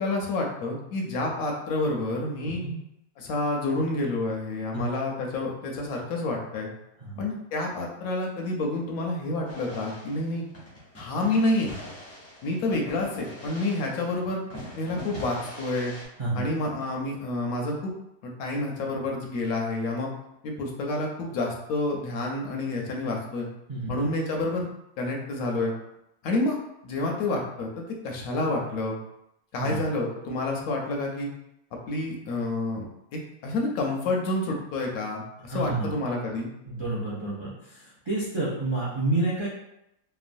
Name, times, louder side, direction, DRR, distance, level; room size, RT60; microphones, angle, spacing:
voice 1, 0.0-2.6 3.2-6.7 7.2-10.4 11.0-11.7 12.4-14.4 14.8-15.9 16.3-17.9 18.2-20.1 20.4-23.5 23.9-24.7 25.0-25.7 26.2-26.6 26.8-29.0 29.5-31.3 31.9-32.9 33.1-36.5, left 2 dB, 75° left, 0 dB, 1.0 m, -29 dB
voice 2, 2.4-2.8 4.7-4.8 7.0-7.2 16.2-16.5 23.7-23.9 29.6-29.8 35.5-36.0 36.6-39.5, right 2 dB, 50° right, -9 dB, 0.3 m, -29 dB
sound 1, 9.4-14.2 14.5-16.0, left 1 dB, 15° left, 0.4 m, -42 dB
3.0 x 2.2 x 2.5 m, 0.83 s
omnidirectional pair, 1.6 m